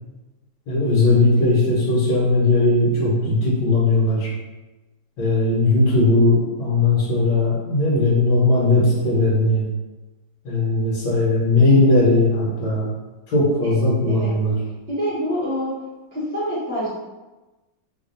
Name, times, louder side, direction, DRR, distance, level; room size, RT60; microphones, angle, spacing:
voice 1, 0.7-4.3 5.2-9.6 10.4-12.9 13.3-14.5, left 2 dB, 75° left, -6 dB, 1.5 m, -18 dB
voice 2, 14.1-14.4 14.9-15.8 16.1-16.9, equal, 10° left, -9 dB, 0.5 m, -26 dB
3.3 x 2.3 x 3.8 m, 1.1 s
omnidirectional pair, 2.0 m